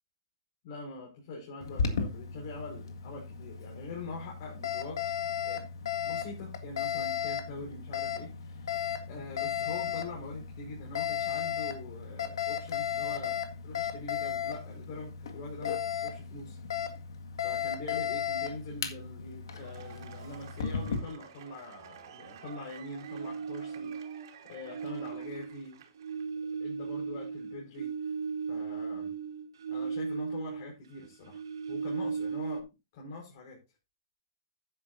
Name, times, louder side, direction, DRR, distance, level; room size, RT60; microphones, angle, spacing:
voice 1, 0.6-5.1 5.4-5.6 6.0-16.6 17.4-23.9 24.5-25.8 26.6-27.9 28.5-29.1 29.7-31.4 31.7-32.6 32.9-33.6, left 3 dB, 55° left, -1 dB, 5.0 m, -43 dB
Alarm, 1.6-21.0, left 8 dB, 85° left, 1.8 m, -35 dB
Cheering / Applause / Crowd, 19.4-26.2, right 9 dB, 65° right, 2.9 m, -52 dB
sound 1, 23.0-24.3 24.6-30.7 31.0-32.6, right 5 dB, 85° right, 2.2 m, -36 dB
12.5 x 10.0 x 2.6 m, 0.25 s
hypercardioid pair, 145°, 2 cm